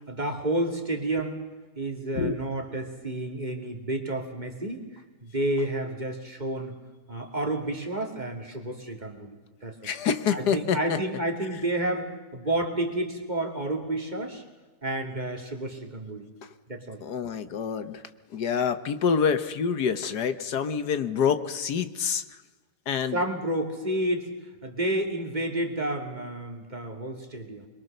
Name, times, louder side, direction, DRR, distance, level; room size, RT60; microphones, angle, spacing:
voice 1, 0.1-1.4 1.8-6.8 7.1-9.9 10.3-14.4 14.8-16.3 16.7-17.0 23.1-24.3 24.6-27.6, right 1 dB, 25° right, 2 dB, 2.7 m, -30 dB
voice 2, 9.8-11.0 16.4-16.5 17.0-18.0 18.3-22.2 22.9-23.2, left 6 dB, 75° left, 10 dB, 1.7 m, -27 dB
25.0 x 22.5 x 6.7 m, 1.3 s
omnidirectional pair, 1.7 m